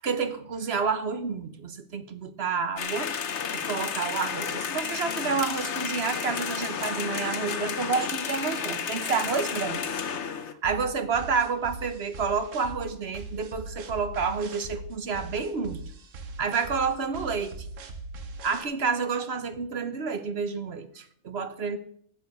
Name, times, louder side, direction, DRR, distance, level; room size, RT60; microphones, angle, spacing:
voice 1, 0.0-3.1 3.6-9.8 10.6-15.8 16.4-17.7 18.4-21.8, right 5 dB, 55° right, 11 dB, 1.2 m, -29 dB
sound 1, 2.8-10.5, left 7 dB, 65° left, 1.2 m, -32 dB
sound 2, 10.6-18.6, right 3 dB, 80° right, 1.4 m, -41 dB
10.5 x 7.0 x 8.1 m, 0.62 s
omnidirectional pair, 1.3 m